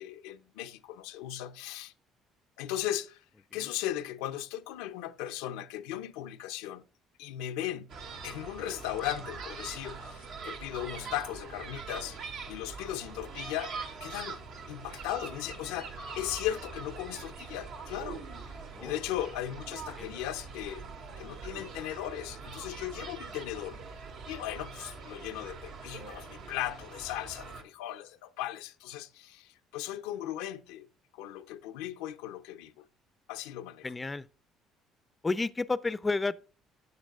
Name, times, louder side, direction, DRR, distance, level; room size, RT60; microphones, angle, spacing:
voice 1, 0.0-1.9 2.6-3.2 3.5-6.8 7.2-7.9 8.2-12.2 12.5-13.7 14.0-14.4 14.7-18.2 18.8-20.8 21.2-23.8 24.3-30.9 31.1-32.8 33.3-33.9, left 12 dB, 85° left, 0.6 m, -37 dB
sound 1, 7.9-27.6, right 4 dB, 75° right, 2.2 m, -43 dB
voice 2, 33.8-34.3 35.2-36.4, left 3 dB, 20° left, 0.5 m, -31 dB
13.0 x 8.5 x 2.4 m
supercardioid pair, 75°, 0 cm